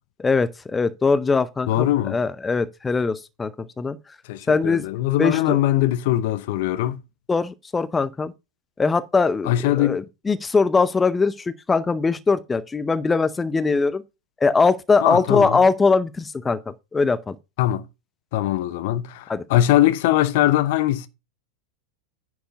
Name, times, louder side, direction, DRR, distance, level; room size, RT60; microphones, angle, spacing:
voice 1, 0.2-4.0 4.5-4.8 5.2-5.6 7.3-8.3 8.8-14.0 14.4-17.4 19.3-19.4, left 4 dB, 15° left, 0.6 m, -21 dB
voice 2, 1.7-2.2 4.3-7.0 9.5-10.0 15.0-15.6 17.6-17.8 18.3-21.1, left 14 dB, 50° left, 0.7 m, -21 dB
10.0 x 4.7 x 5.3 m
figure-of-eight pair, 90°, 0 cm